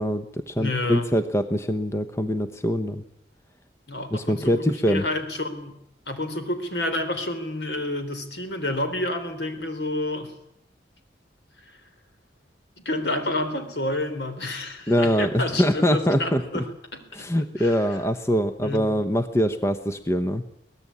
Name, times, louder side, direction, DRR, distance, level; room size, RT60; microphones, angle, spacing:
voice 1, 0.0-3.0 4.1-5.1 14.9-16.6 17.1-20.4, equal, 15° left, 9 dB, 0.9 m, -23 dB
voice 2, 0.6-1.1 3.9-5.7 6.1-10.3 12.9-17.3 17.6-17.8 18.6-18.9, left 1 dB, 70° left, 8 dB, 3.6 m, -29 dB
23.5 x 18.0 x 8.6 m, 0.78 s
head